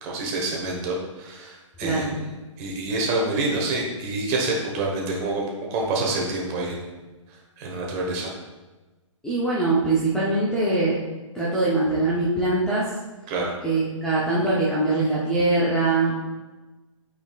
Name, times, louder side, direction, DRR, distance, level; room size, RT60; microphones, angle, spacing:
voice 1, 0.0-2.3 2.6-6.9 7.6-8.3 13.3-13.5, right 2 dB, 25° right, -1 dB, 1.3 m, -27 dB
voice 2, 1.8-2.1 9.2-11.0 11.3-12.9 13.6-16.2, right 2 dB, 5° left, -9 dB, 0.7 m, -22 dB
8.8 x 4.3 x 2.5 m, 1.2 s
hypercardioid pair, 145°, 17 cm